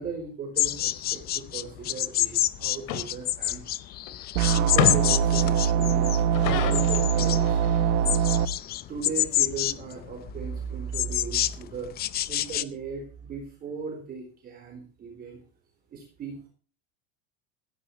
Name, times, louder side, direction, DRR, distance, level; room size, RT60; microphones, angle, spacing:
voice 1, 0.0-3.6 4.6-8.3 8.9-11.9 12.3-15.4 15.9-16.5, right 5 dB, 25° right, 2 dB, 4.0 m, -37 dB
sound 1, 0.6-12.6, left 13 dB, 30° left, 0.6 m, -28 dB
sound 2, 2.9-3.0 4.1-4.3 4.8-5.2 6.2-7.9, left 10 dB, 60° left, 2.6 m, -28 dB
sound 3, 4.3-8.5, right 8 dB, 70° right, 1.3 m, -23 dB
17.0 x 14.5 x 3.1 m, 0.37 s
cardioid pair, 160°, 33 cm